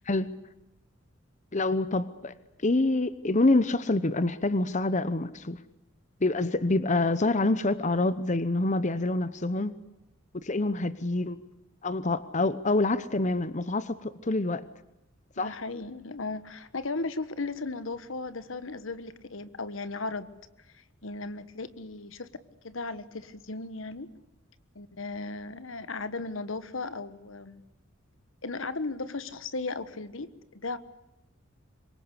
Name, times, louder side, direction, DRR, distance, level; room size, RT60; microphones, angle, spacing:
voice 1, 1.5-2.3 2.6-5.6 6.2-9.8 10.4-11.4 11.8-14.6 15.4-15.5, left 2 dB, 35° left, 1.0 m, -26 dB
voice 2, 15.4-20.3 20.7-22.3 22.6-24.1 24.7-27.6 28.4-30.8, left 3 dB, 75° left, 1.4 m, -36 dB
26.5 x 23.5 x 8.3 m
head